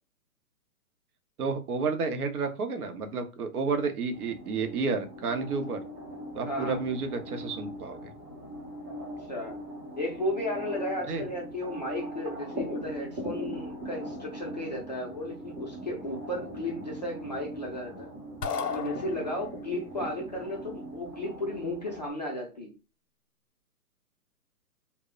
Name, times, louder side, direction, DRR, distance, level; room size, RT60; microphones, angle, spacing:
voice 1, 1.4-5.8 6.3-8.1 11.1-11.2, right 4 dB, 70° right, 7 dB, 0.7 m, -31 dB
sound 1, 4.1-22.1, right 1 dB, 20° right, 0.7 m, -41 dB
voice 2, 6.4-6.8 9.3-9.6 10.0-18.1 18.7-22.7, left 1 dB, 30° left, -2 dB, 0.4 m, -34 dB
sound 2, 18.4-19.7, left 5 dB, 85° left, 0.7 m, -34 dB
2.1 x 2.0 x 3.6 m, 0.32 s
hypercardioid pair, 150°, 46 cm